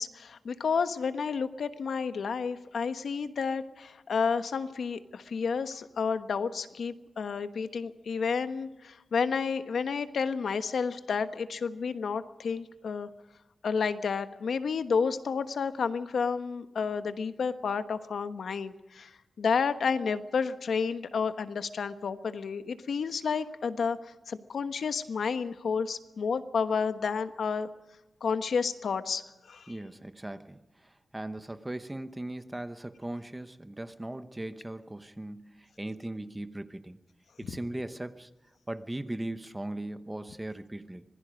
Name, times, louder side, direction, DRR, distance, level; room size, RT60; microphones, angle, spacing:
voice 1, 0.0-13.1 13.6-19.1 19.4-27.7 28.2-29.7, left 5 dB, 80° left, 10 dB, 1.2 m, -31 dB
voice 2, 29.7-37.0 37.4-38.3 38.7-41.0, right 1 dB, 15° right, 10 dB, 1.0 m, -39 dB
25.5 x 20.5 x 5.2 m, 1.0 s
wide cardioid pair, 160°, 0 cm